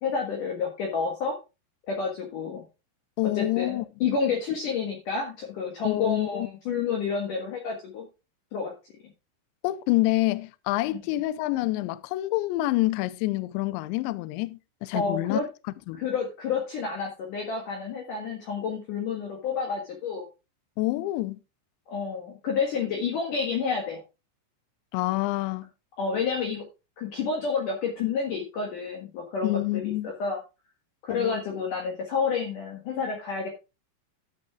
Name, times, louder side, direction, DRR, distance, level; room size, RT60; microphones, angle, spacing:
voice 1, 0.0-1.3 1.9-2.6 3.4-8.0 8.5-8.7 14.9-15.4 16.0-20.3 21.9-24.0 26.0-26.6 27.0-30.4 31.0-33.5, left 5 dB, 65° left, 2.1 m, -29 dB
voice 2, 3.2-3.9 5.8-6.5 9.6-15.4 15.9-16.0 20.8-21.4 24.9-25.7 29.4-30.1 31.1-31.4, left 18 dB, 90° left, 2.5 m, -27 dB
12.0 x 6.2 x 3.6 m
omnidirectional pair, 5.8 m